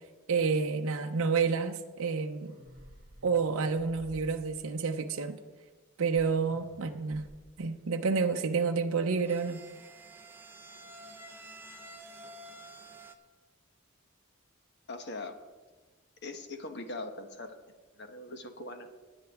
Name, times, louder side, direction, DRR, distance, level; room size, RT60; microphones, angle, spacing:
voice 1, 0.3-2.6 3.2-5.4 6.0-7.3 7.6-9.6, right 5 dB, 75° right, 4 dB, 0.6 m, -29 dB
sound 1, 2.3-4.7 6.1-7.6, equal, 40° right, 2.8 m, -54 dB
sound 2, 8.9-13.2, right 1 dB, 10° right, 0.6 m, -50 dB
voice 2, 14.9-15.4 16.2-17.5 17.9-18.9, left 2 dB, 50° left, 6 dB, 1.1 m, -41 dB
19.5 x 7.9 x 3.5 m, 1.3 s
head